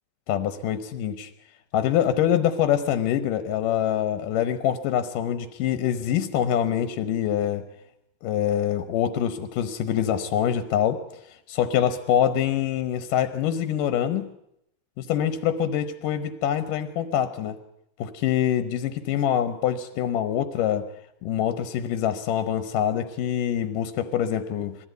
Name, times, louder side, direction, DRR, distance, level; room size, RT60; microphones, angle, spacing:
voice 1, 0.3-1.3 1.7-7.6 8.2-11.0 11.5-14.3 15.0-17.6 18.0-20.9 21.2-24.8, left 10 dB, 70° left, 11 dB, 2.3 m, -25 dB
21.5 x 15.5 x 9.2 m, 0.76 s
omnidirectional pair, 4.5 m